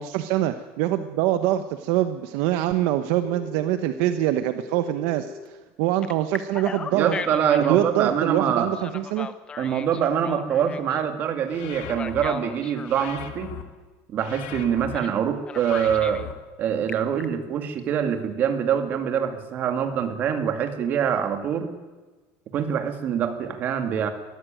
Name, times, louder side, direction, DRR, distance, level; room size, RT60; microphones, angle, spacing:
voice 1, 0.0-5.3 5.8-7.2 7.7-9.3, right 13 dB, 65° right, 10 dB, 1.1 m, -24 dB
Telephone, 3.2-5.5 6.0-7.8 8.7-11.0 11.8-13.2 14.9-15.2 15.5-16.3 16.7-17.2, left 5 dB, 20° left, 1.0 m, -37 dB
voice 2, 6.9-8.7 9.6-13.5 14.1-16.2 16.6-21.8 22.5-24.1, right 8 dB, 35° right, 7 dB, 2.5 m, -24 dB
sound 1, 11.5-12.3 12.8-13.6 14.2-15.0 15.5-16.3, left 10 dB, 80° left, 2.4 m, -38 dB
21.5 x 14.0 x 9.2 m, 1.2 s
cardioid pair, 170°, 5 cm